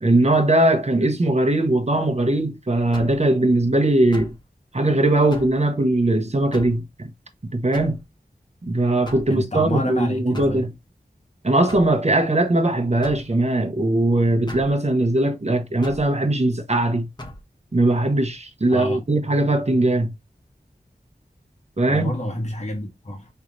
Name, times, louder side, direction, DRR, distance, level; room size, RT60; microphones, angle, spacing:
voice 1, 0.0-4.3 4.7-7.1 7.4-8.0 8.7-10.7 11.4-17.1 17.7-20.1 21.8-22.1, right 1 dB, 40° right, 1.0 m, -20 dB
sound 1, 2.9-3.2 4.1-4.4 5.3-5.6 6.5-6.8 7.7-8.0 9.1-9.3 10.3-10.6 11.7-11.9 13.0-13.3 14.5-14.7 15.8-16.1 17.2-17.4, equal, 25° left, 1.2 m, -37 dB
voice 2, 9.3-10.7 18.7-19.0 21.9-23.3, left 1 dB, 45° left, 1.4 m, -28 dB
5.7 x 3.1 x 2.6 m
wide cardioid pair, 55°, 17 cm